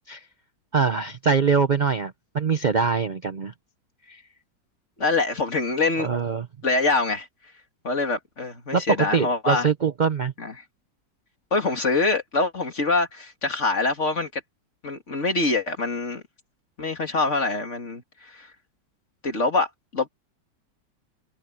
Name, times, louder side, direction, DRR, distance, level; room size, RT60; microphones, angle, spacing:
voice 1, 0.7-3.5 4.1-4.2 6.0-6.5 8.7-10.3, right 5 dB, 70° right, 0.4 m, -23 dB
voice 2, 5.0-6.1 6.6-7.3 7.8-9.7 10.4-10.5 11.5-14.4 14.8-16.2 16.8-18.5 19.2-20.1, left 3 dB, 40° left, 2.8 m, -25 dB
omnidirectional pair, 1.9 m